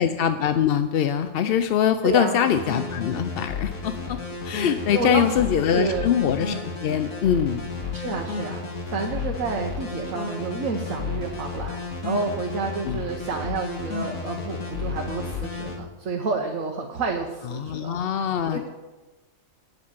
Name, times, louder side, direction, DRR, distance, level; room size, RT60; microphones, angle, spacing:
voice 1, 0.0-4.2 4.4-6.5 6.8-7.8 12.9-13.0 17.5-18.7, left 9 dB, 60° left, 9 dB, 0.6 m, -23 dB
voice 2, 2.0-2.4 4.9-5.4 5.7-6.1 7.9-18.6, right 4 dB, 70° right, 1 dB, 1.4 m, -30 dB
sound 1, 2.4-15.7, left 4 dB, 85° left, 2.2 m, -32 dB
8.0 x 7.6 x 8.6 m, 1.2 s
omnidirectional pair, 1.4 m